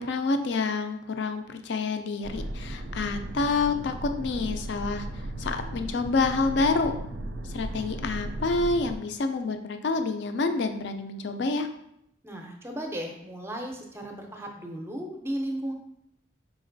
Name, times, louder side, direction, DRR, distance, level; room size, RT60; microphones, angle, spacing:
voice 1, 0.0-5.1 5.4-6.9 7.4-11.7, left 3 dB, 60° left, 7 dB, 0.4 m, -28 dB
sound 1, 2.2-9.0, right 1 dB, 75° right, 0.4 m, -36 dB
voice 2, 12.2-15.7, right 1 dB, 15° right, 2 dB, 0.5 m, -35 dB
4.9 x 3.7 x 2.6 m, 0.77 s
head